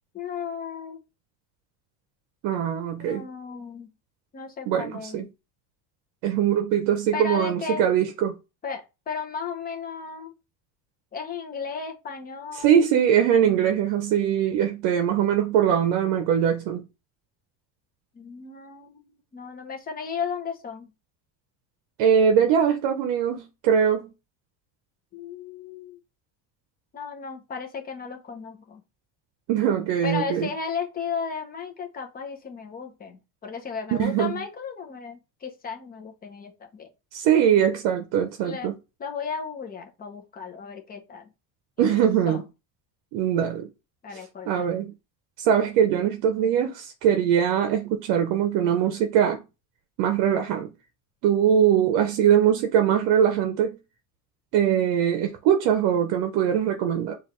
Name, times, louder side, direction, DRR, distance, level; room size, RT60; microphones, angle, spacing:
voice 1, 0.1-1.0 3.0-3.9 4.3-5.3 7.1-7.8 8.6-10.3 11.1-12.8 18.1-20.9 25.1-26.0 26.9-28.8 30.0-36.9 38.4-38.7 39.0-41.3 41.8-41.9 42.3-42.4 44.0-44.8, left 6 dB, 20° left, 0.6 m, -35 dB
voice 2, 2.4-3.3 4.7-5.3 6.2-8.3 12.5-16.8 22.0-24.1 29.5-30.5 33.9-34.3 37.1-38.7 41.8-42.4 43.1-43.7 44.5-44.9 45.4-49.4 50.0-50.7 51.2-53.7 54.5-57.1, right 9 dB, 65° right, 0.7 m, -22 dB
6.2 x 2.5 x 3.0 m
cardioid pair, 165°, 44 cm